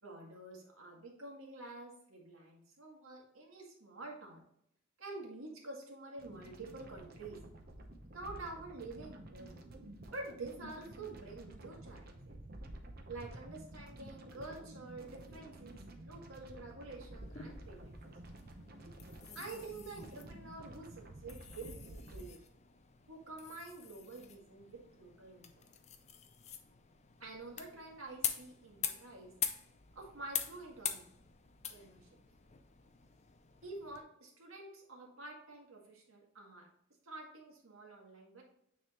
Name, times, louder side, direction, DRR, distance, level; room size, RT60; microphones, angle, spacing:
voice 1, 0.0-4.4 5.0-7.4 8.0-9.6 10.1-12.4 13.1-18.2 19.3-22.4 23.1-25.6 27.2-29.3 29.9-31.1 31.7-32.1 33.6-36.7 37.0-38.4, right 2 dB, 75° right, -1 dB, 2.0 m, -48 dB
sound 1, 6.2-22.3, right 1 dB, 45° right, 0.9 m, -51 dB
sound 2, 17.1-34.0, left 9 dB, 35° left, 0.5 m, -45 dB
9.4 x 3.7 x 3.0 m, 0.74 s
head